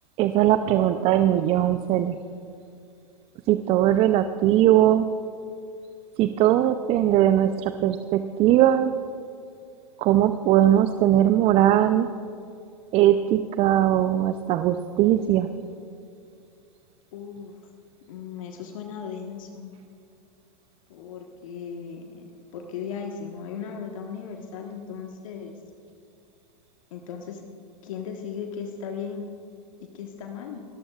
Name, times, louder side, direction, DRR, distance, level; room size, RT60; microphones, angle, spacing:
voice 1, 0.2-2.2 3.5-5.1 6.2-8.9 10.0-12.1 12.9-15.5, right 12 dB, 30° right, 10 dB, 0.5 m, -20 dB
voice 2, 17.1-17.6 18.1-19.7 20.9-25.5 26.9-27.4 27.8-29.3 29.8-30.6, left 6 dB, 55° left, 3 dB, 1.4 m, -37 dB
29.5 x 13.0 x 2.4 m, 2.5 s
figure-of-eight pair, 100°, 20 cm